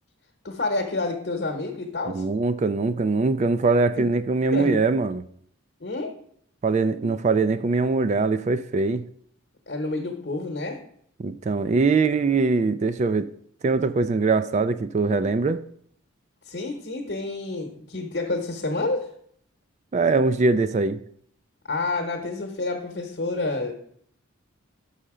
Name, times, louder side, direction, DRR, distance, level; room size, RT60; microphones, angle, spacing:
voice 1, 0.4-2.2 4.0-4.1 4.5-4.8 5.8-6.1 9.7-10.8 16.5-19.1 21.7-23.7, left 2 dB, 55° left, 2 dB, 1.0 m, -29 dB
voice 2, 2.1-5.2 6.6-9.0 11.2-13.3 13.6-15.6 19.9-21.0, right 3 dB, 35° right, 13 dB, 0.3 m, -22 dB
6.4 x 5.7 x 4.9 m, 0.64 s
head